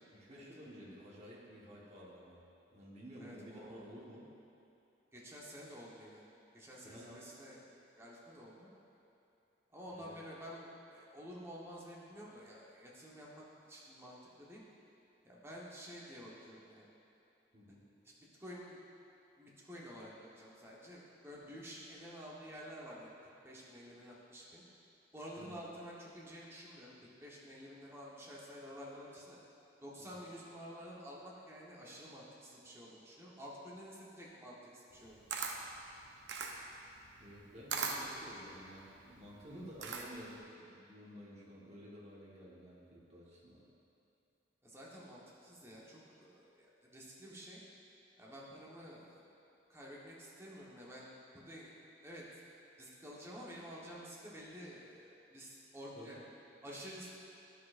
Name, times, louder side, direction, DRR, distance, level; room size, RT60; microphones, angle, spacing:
voice 1, 0.1-2.4 2.7-4.3 6.8-7.2 9.9-10.1 17.5-17.8 25.4-25.6 30.0-30.2 37.2-43.6 55.9-56.2, equal, 40° right, -5 dB, 1.3 m, -52 dB
voice 2, 3.2-3.9 5.1-6.2 6.5-7.6 8.0-8.7 9.7-14.6 15.2-16.9 18.0-18.1 18.4-18.8 19.4-23.1 23.4-24.6 25.1-26.9 27.2-29.4 29.8-35.6 44.6-47.6 48.2-49.2 49.7-51.7 52.0-52.4 52.8-56.2 56.6-57.2, equal, 15° right, -5 dB, 1.1 m, -50 dB
Camera, 34.9-40.4, right 5 dB, 85° right, 0.6 m, -41 dB
10.5 x 6.4 x 2.5 m, 2.8 s
head